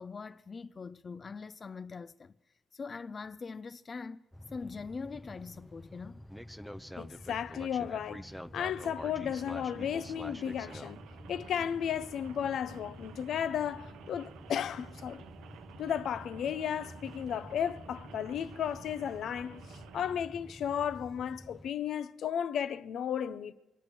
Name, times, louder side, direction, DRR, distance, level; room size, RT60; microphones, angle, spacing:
voice 1, 0.0-2.3 2.7-4.2 4.5-6.2, left 4 dB, 35° left, 0.4 m, -42 dB
sound 1, 4.3-21.7, equal, ahead, 0.7 m, -48 dB
voice 2, 7.0-8.3 8.5-11.0 11.3-15.2 15.8-23.5, left 9 dB, 70° left, 0.7 m, -34 dB
Rain, 8.7-20.2, right 8 dB, 85° right, 0.8 m, -52 dB
24.5 x 8.9 x 6.1 m
cardioid pair, 90°, 0 cm